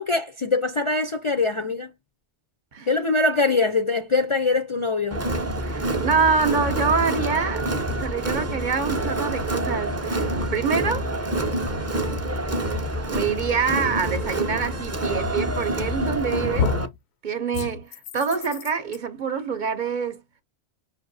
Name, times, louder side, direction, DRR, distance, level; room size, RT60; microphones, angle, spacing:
voice 1, 0.0-1.9 2.9-5.3, left 3 dB, 40° left, 0.4 m, -23 dB
Crowd, 5.1-16.9, right 1 dB, 20° right, 0.5 m, -27 dB
voice 2, 5.6-11.1 13.1-16.8 17.2-20.2, right 5 dB, 50° right, 0.8 m, -26 dB
sound 1, 15.8-16.2 16.6-17.0 17.5-19.0, left 6 dB, 85° left, 0.9 m, -29 dB
5.7 x 2.6 x 2.6 m
omnidirectional pair, 1.1 m